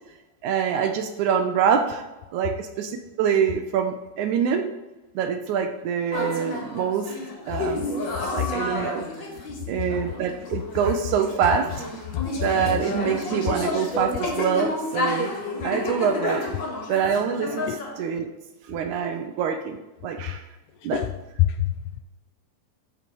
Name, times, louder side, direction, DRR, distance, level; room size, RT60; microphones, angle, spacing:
voice 1, 0.4-2.0 2.3-4.7 5.2-7.1 7.5-7.9 8.3-9.1 9.7-11.7 12.4-15.3 15.6-16.4 16.9-18.3 18.7-19.8 20.0-20.4 20.8-21.0, right 7 dB, 75° right, 6 dB, 1.9 m, -25 dB
sound 1, 6.1-17.9, left 2 dB, 40° left, 2.1 m, -30 dB
voice 2, 21.4-22.0, left 13 dB, 80° left, 8 dB, 1.8 m, -24 dB
13.0 x 5.5 x 4.6 m, 1.1 s
omnidirectional pair, 3.9 m